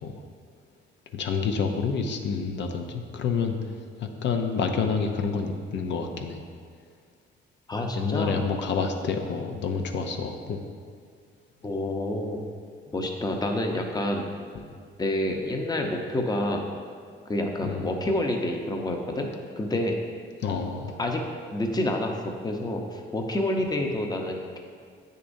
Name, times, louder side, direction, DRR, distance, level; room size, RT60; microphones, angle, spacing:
voice 1, 1.1-3.6 4.0-6.4 7.9-10.6 14.6-14.7 17.6-18.0 20.4-21.0, left 5 dB, 65° left, 4 dB, 0.7 m, -28 dB
voice 2, 7.7-8.4 11.6-12.4 12.9-14.4 15.0-16.6 17.3-19.3 19.6-20.0 21.0-21.2 21.5-24.6, left 1 dB, 20° left, 2 dB, 0.8 m, -28 dB
8.5 x 6.6 x 2.7 m, 2.1 s
cardioid pair, 90°, 20 cm